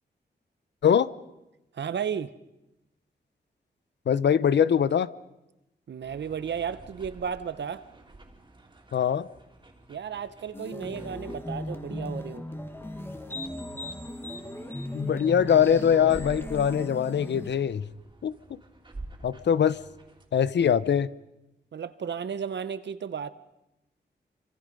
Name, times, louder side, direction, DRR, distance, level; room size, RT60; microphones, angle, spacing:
voice 1, 1.7-2.3 5.9-7.9 9.9-12.4 21.7-23.3, right 7 dB, 75° right, 1.0 m, -33 dB
voice 2, 4.1-5.1 8.9-9.3 14.9-17.9 18.2-18.6 19.2-19.8 20.3-21.1, left 8 dB, 75° left, 0.8 m, -22 dB
sound 1, 6.0-20.3, right 2 dB, 25° right, 3.0 m, -49 dB
sound 2, 10.5-17.5, left 1 dB, 10° left, 1.7 m, -37 dB
27.0 x 25.5 x 5.3 m
wide cardioid pair, 120°, 18 cm